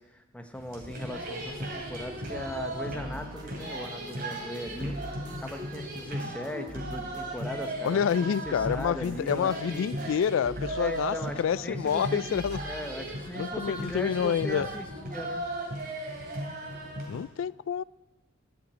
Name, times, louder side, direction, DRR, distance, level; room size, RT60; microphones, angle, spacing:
voice 1, 0.0-4.9 5.4-9.9 10.8-15.5, left 1 dB, 5° left, 0.8 m, -39 dB
sound 1, 0.5-17.2, right 1 dB, 45° right, 2.9 m, -36 dB
sound 2, 2.9-12.0 12.3-13.9 14.7-14.8, equal, 20° right, 2.4 m, -47 dB
voice 2, 7.8-12.6 13.3-14.7 17.1-17.8, left 7 dB, 70° left, 0.3 m, -28 dB
10.5 x 7.1 x 8.6 m
head